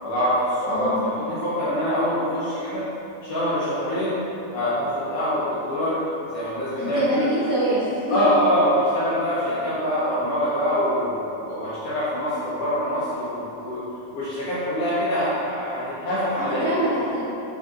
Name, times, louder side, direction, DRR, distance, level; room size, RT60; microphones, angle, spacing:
voice 1, 0.0-2.8 3.2-4.2 4.5-6.0 6.3-7.3 8.1-13.8 14.1-16.9, equal, 75° left, -11 dB, 1.4 m, -24 dB
voice 2, 0.6-1.1 6.8-8.2 16.6-17.2, right 1 dB, 65° right, -17 dB, 0.9 m, -25 dB
4.5 x 3.9 x 2.4 m, 2.9 s
omnidirectional pair, 3.5 m